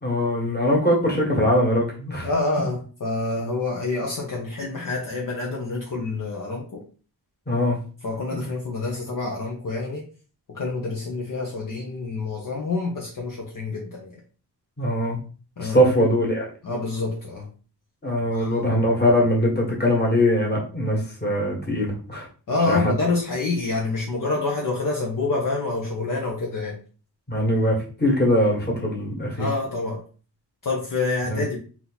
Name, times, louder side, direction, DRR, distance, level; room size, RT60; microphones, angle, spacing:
voice 1, 0.0-2.3 7.5-7.8 8.3-8.4 14.8-15.2 15.6-16.5 18.0-22.3 22.7-22.9 27.3-29.5 31.2-31.4, equal, 25° left, -2 dB, 1.7 m, -22 dB
voice 2, 2.2-6.8 8.0-10.0 10.5-14.1 15.6-15.9 16.6-17.5 18.3-18.7 22.5-26.8 29.4-30.0 30.6-31.6, left 3 dB, 55° left, -2 dB, 1.0 m, -27 dB
3.8 x 2.9 x 4.1 m, 0.38 s
wide cardioid pair, 135°, 39 cm